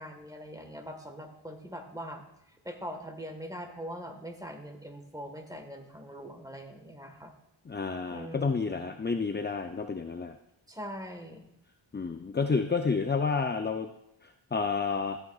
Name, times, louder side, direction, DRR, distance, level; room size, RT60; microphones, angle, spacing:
voice 1, 0.0-2.2 2.6-7.3 8.1-8.9 10.7-11.5, equal, 5° right, 4 dB, 1.5 m, -42 dB
voice 2, 7.7-10.3 11.9-13.9 14.5-15.2, left 4 dB, 20° left, 6 dB, 0.5 m, -30 dB
14.0 x 8.8 x 2.4 m, 0.79 s
wide cardioid pair, 55°, 49 cm